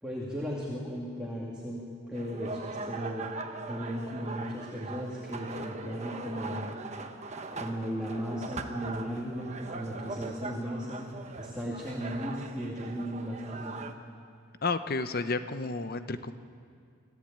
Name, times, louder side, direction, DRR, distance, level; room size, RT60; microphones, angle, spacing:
voice 1, 0.0-3.3 3.7-6.7 7.5-11.1 11.4-13.8, equal, 5° right, -5 dB, 2.4 m, -36 dB
sound 1, 2.1-13.9, right 3 dB, 35° right, 1.1 m, -40 dB
voice 2, 14.6-16.3, left 3 dB, 45° left, 11 dB, 0.9 m, -31 dB
25.5 x 15.0 x 8.9 m, 2.4 s
head